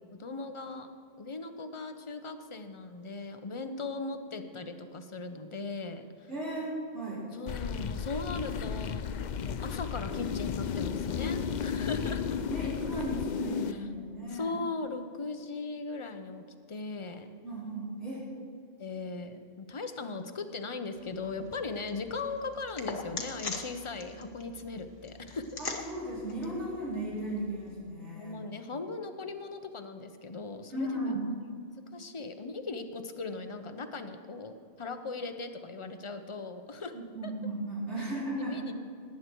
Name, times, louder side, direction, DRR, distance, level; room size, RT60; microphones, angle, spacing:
voice 1, 0.1-0.9 1.2-6.3 7.3-9.1 9.4-12.3 13.7-13.8 14.3-17.3 18.8-25.6 28.1-31.2 31.9-36.9 37.2-37.3 38.0-38.1 38.4-38.7, left 3 dB, 30° left, 8 dB, 0.7 m, -38 dB
voice 2, 6.3-7.2 12.5-14.5 17.4-18.2 25.6-28.4 30.7-31.3 36.9-38.7, right 1 dB, 65° right, -7 dB, 4.6 m, -36 dB
sound 1, 7.5-13.7, left 7 dB, 60° left, 0.5 m, -34 dB
sound 2, 20.9-27.7, left 4 dB, 75° left, 1.7 m, -43 dB
18.0 x 9.6 x 4.6 m, 2.4 s
omnidirectional pair, 1.3 m